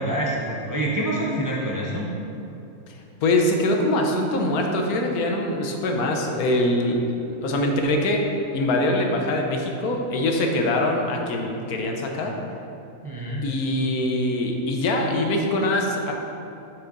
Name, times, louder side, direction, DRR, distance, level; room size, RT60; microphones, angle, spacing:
voice 1, 0.0-2.1 13.0-13.4, right 1 dB, 20° right, -4 dB, 0.5 m, -26 dB
voice 2, 2.9-8.2 8.5-12.3 13.4-16.1, left 1 dB, 90° left, 2 dB, 1.3 m, -23 dB
6.7 x 6.2 x 3.8 m, 2.8 s
omnidirectional pair, 1.5 m